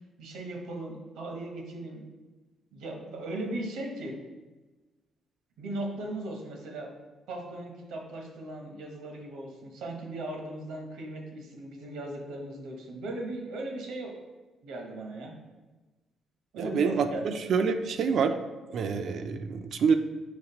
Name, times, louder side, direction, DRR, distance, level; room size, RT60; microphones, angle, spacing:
voice 1, 0.2-2.1 2.7-4.2 5.6-6.9 7.3-14.2 14.6-15.3 16.5-17.4, right 1 dB, 90° right, 1 dB, 0.8 m, -38 dB
voice 2, 16.6-17.1 17.5-18.3 18.7-20.0, right 6 dB, 65° right, 8 dB, 0.3 m, -26 dB
5.0 x 3.2 x 2.9 m, 1.2 s
cardioid pair, 90°, 0 cm